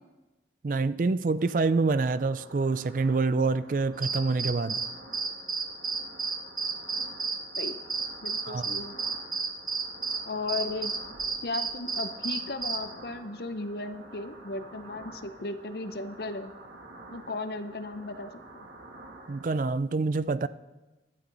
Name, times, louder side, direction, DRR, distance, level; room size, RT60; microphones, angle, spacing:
voice 1, 0.6-4.8 8.5-8.7 19.3-20.5, right 3 dB, 45° right, 0.4 m, -26 dB
sound 1, 1.4-19.5, right 2 dB, 85° right, 1.8 m, -49 dB
sound 2, 4.0-12.8, right 4 dB, 25° right, 1.0 m, -32 dB
voice 2, 8.2-9.0 10.3-11.0 11.4-16.5 17.1-18.6, left 2 dB, 60° left, 0.8 m, -36 dB
16.0 x 12.0 x 4.0 m
head